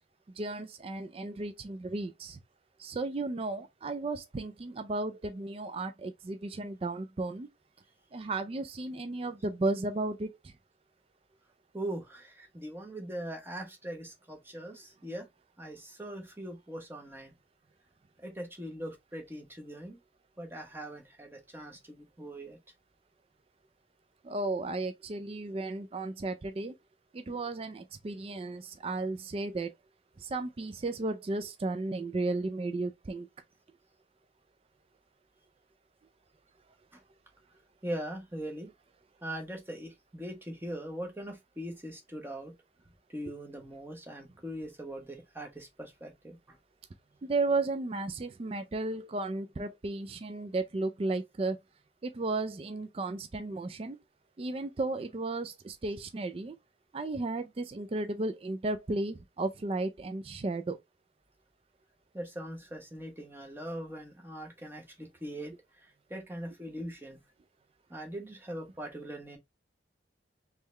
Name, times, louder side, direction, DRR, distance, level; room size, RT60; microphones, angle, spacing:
voice 1, 0.4-2.4 2.8-7.5 8.1-10.5 24.2-26.7 27.1-29.7 30.2-33.3 47.2-51.6 52.0-54.0 54.4-56.5 56.9-60.8, right 2 dB, 30° right, 0.3 m, -34 dB
voice 2, 11.7-15.3 15.6-17.3 18.2-20.0 20.4-22.6 36.9-37.0 37.8-38.7 39.2-42.5 43.1-46.6 62.1-67.2 67.9-69.4, right 1 dB, 10° right, 1.0 m, -41 dB
3.7 x 3.1 x 3.2 m
head